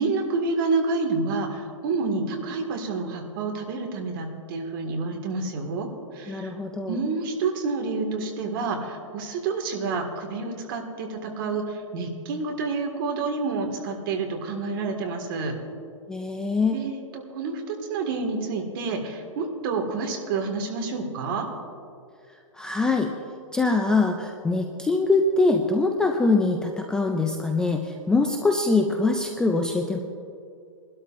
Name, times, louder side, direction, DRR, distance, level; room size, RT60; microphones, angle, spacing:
voice 1, 0.0-5.9 6.1-6.5 6.9-15.6 16.7-16.9 17.3-21.5, right 4 dB, 40° right, 3 dB, 1.9 m, -28 dB
voice 2, 6.3-7.0 16.1-16.8 22.6-23.1 23.5-30.0, left 3 dB, 5° left, 3 dB, 0.3 m, -23 dB
22.0 x 12.5 x 2.6 m, 2.4 s
hypercardioid pair, 155°, 17 cm